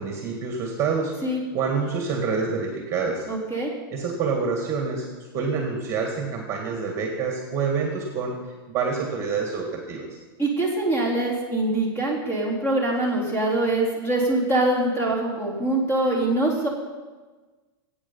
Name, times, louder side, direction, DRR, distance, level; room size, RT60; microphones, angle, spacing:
voice 1, 0.0-3.3 3.9-5.1 5.3-8.4 8.7-10.2, right 5 dB, 25° right, 2 dB, 1.9 m, -27 dB
voice 2, 3.3-3.7 10.4-16.7, right 2 dB, 15° left, -2 dB, 3.6 m, -24 dB
20.5 x 8.8 x 5.6 m, 1.3 s
supercardioid pair, 160°, 12 cm